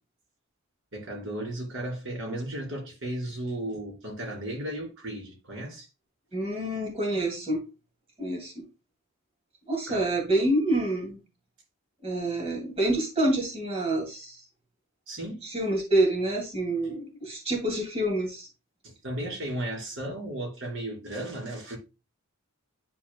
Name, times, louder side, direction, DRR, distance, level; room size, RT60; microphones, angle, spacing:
voice 1, 0.9-5.9 9.9-10.0 15.1-15.5 18.8-21.8, right 1 dB, 65° right, 3.2 m, -35 dB
voice 2, 6.3-7.6 8.2-8.6 9.7-11.2 12.0-14.4 15.4-18.5, right 1 dB, 30° right, 2.3 m, -27 dB
10.5 x 4.2 x 2.2 m
head